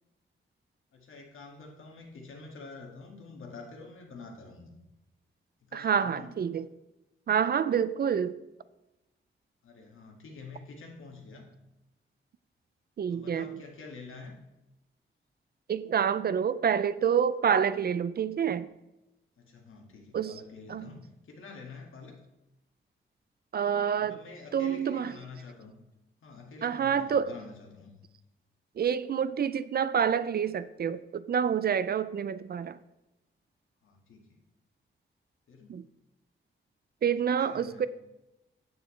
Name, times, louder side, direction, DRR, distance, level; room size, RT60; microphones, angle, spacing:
voice 1, 0.9-4.8 5.6-6.4 9.6-11.5 13.1-14.3 19.4-22.1 24.0-25.8 26.2-27.9 33.8-34.4 35.5-35.8 37.3-37.9, left 3 dB, 80° left, 2.0 m, -47 dB
voice 2, 5.7-6.6 7.3-8.4 13.0-13.5 15.7-18.7 20.1-20.3 20.7-20.9 23.5-24.2 24.5-25.1 26.6-27.3 28.8-32.8 35.7-35.8 37.0-37.9, right 7 dB, 50° right, 0.4 m, -27 dB
9.4 x 9.3 x 3.2 m
wide cardioid pair, 125°, 20 cm